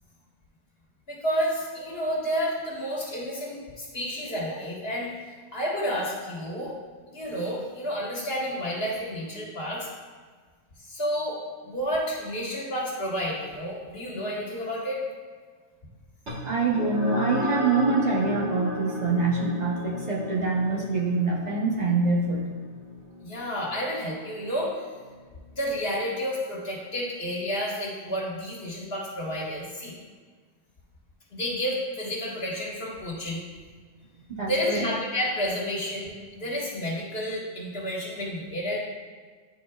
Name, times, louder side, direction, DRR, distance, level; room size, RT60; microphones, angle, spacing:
voice 1, 1.1-5.1 5.5-6.7 7.1-9.9 10.8-11.4 11.6-15.0 23.2-24.8 25.5-29.9 31.3-33.4 34.5-38.8, equal, 60° left, -5 dB, 1.7 m, -30 dB
sound 1, 16.3-25.1, left 1 dB, 85° right, 1.8 m, -34 dB
voice 2, 16.4-22.4 34.3-34.9, right 3 dB, 40° right, -5 dB, 0.8 m, -25 dB
10.5 x 4.3 x 2.3 m, 1.5 s
omnidirectional pair, 1.2 m